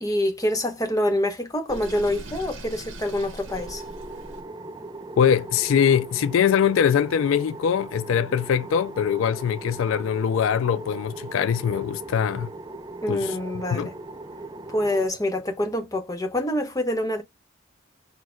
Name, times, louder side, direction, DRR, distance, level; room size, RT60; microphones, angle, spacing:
voice 1, 0.0-3.8 13.0-13.9 14.7-17.2, left 1 dB, 15° left, 0.8 m, -26 dB
Sink (filling or washing), 1.7-4.4, right 1 dB, 70° right, 1.3 m, -40 dB
sound 1, 3.5-15.1, right 2 dB, 20° right, 0.3 m, -39 dB
voice 2, 5.2-12.5 13.1-13.4 13.7-13.9, left 8 dB, 70° left, 0.3 m, -22 dB
4.3 x 2.1 x 4.3 m
head